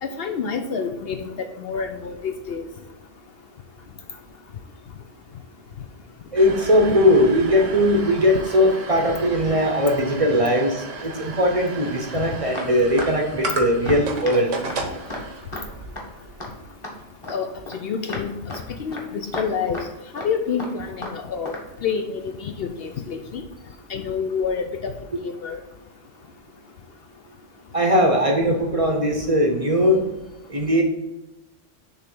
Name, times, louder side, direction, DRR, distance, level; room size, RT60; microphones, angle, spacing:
voice 1, 0.0-2.6 17.3-18.3 18.8-19.8 20.1-21.5 21.8-23.4 23.9-25.6, left 6 dB, 65° left, 6 dB, 0.7 m, -28 dB
voice 2, 6.3-14.5 27.7-30.0 30.5-30.8, equal, 35° right, 2 dB, 0.7 m, -19 dB
sound 1, 6.4-16.7, right 3 dB, 85° right, 1.4 m, -34 dB
sound 2, 12.5-13.1 13.4-13.6 13.9-14.0 14.3-14.4 14.7-14.8 15.1-15.2 15.5-15.7 16.0-16.1 16.4-16.5 16.8-17.4 17.7-17.8 18.1-18.2 18.5-18.7 18.9-19.1 19.3-19.9 20.2-20.3 20.6-21.2 21.5-21.7 22.9-23.0, left 1 dB, 25° left, 1.3 m, -33 dB
6.6 x 3.4 x 5.3 m, 0.99 s
omnidirectional pair, 1.2 m